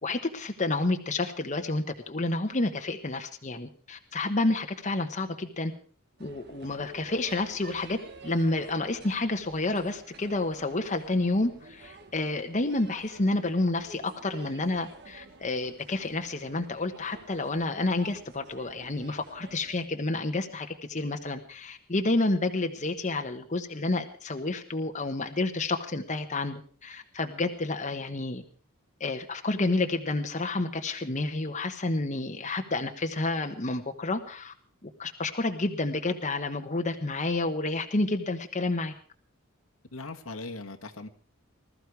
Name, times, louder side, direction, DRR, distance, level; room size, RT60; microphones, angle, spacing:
voice 1, 0.0-5.7 6.2-28.4 29.0-34.5 34.8-38.9, left 2 dB, 35° left, 5 dB, 1.2 m, -30 dB
sound 1, 6.2-19.9, right 3 dB, 55° right, 1.6 m, -50 dB
voice 2, 39.9-41.1, left 3 dB, 75° left, 5 dB, 1.6 m, -39 dB
20.0 x 14.0 x 4.8 m, 0.43 s
head